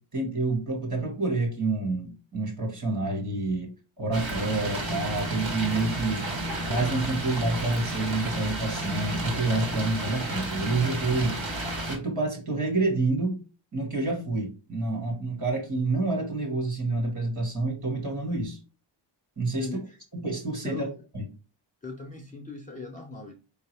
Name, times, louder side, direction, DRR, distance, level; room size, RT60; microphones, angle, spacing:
voice 1, 0.0-3.7 4.0-6.3 6.7-11.4 11.9-13.4 13.7-18.6 19.4-19.7 20.1-20.9 21.1-21.3, right 2 dB, 35° right, 1.7 m, -28 dB
sound 1, 4.1-12.0, right 1 dB, 60° right, 1.6 m, -32 dB
voice 2, 19.6-20.0 20.6-21.0 21.8-23.4, left 3 dB, 15° left, 0.5 m, -38 dB
4.7 x 2.7 x 3.3 m
wide cardioid pair, 145°, 49 cm